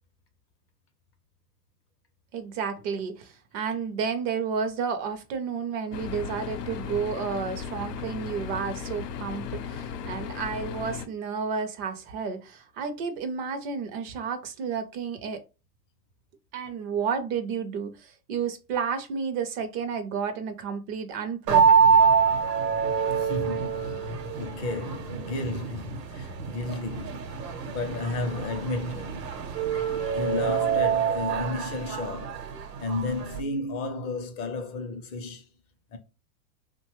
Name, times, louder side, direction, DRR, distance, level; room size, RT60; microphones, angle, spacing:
voice 1, 2.3-15.4 16.5-21.7, right 6 dB, 40° right, 0.5 m, -31 dB
sound 1, 5.9-11.1, left 7 dB, 80° left, 0.6 m, -36 dB
sound 2, 21.5-33.4, right 6 dB, 85° right, 0.9 m, -25 dB
voice 2, 23.2-29.3 29.7-32.5 32.8-35.5 35.9-36.0, left 2 dB, 30° left, 0.5 m, -33 dB
2.7 x 2.2 x 3.0 m
hypercardioid pair, 110°, 48 cm